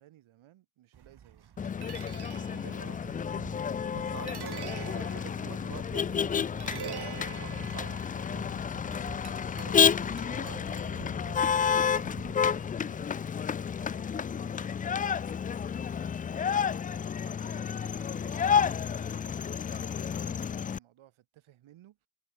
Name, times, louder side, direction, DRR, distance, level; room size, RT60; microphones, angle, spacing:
voice 1, 0.0-1.5 11.0-11.3 12.2-13.0 13.7-15.1 17.1-22.0, right 13 dB, 70° right, 4.0 m, -59 dB
sound 1, 0.9-13.0, right 9 dB, 50° right, 2.1 m, -46 dB
Motor vehicle (road), 1.6-20.8, left 7 dB, 20° left, 0.3 m, -30 dB
voice 2, 2.5-3.0 3.9-8.6 9.5-9.9 10.3-11.5, right 6 dB, 35° right, 2.1 m, -47 dB
hypercardioid pair, 50°, 50 cm